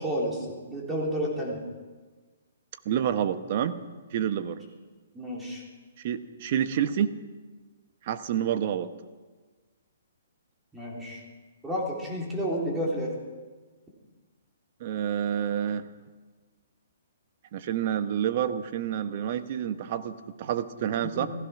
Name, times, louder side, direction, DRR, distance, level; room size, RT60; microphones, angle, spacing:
voice 1, 0.0-1.6 5.1-5.6 10.7-11.2 11.6-13.1 21.1-21.3, equal, 10° right, -3 dB, 3.8 m, -31 dB
voice 2, 2.8-3.8 4.1-4.6 6.0-7.1 8.0-8.9 14.8-15.9 17.5-21.3, right 9 dB, 45° right, 11 dB, 1.1 m, -28 dB
15.5 x 15.5 x 6.1 m, 1.4 s
hypercardioid pair, 140°, 0 cm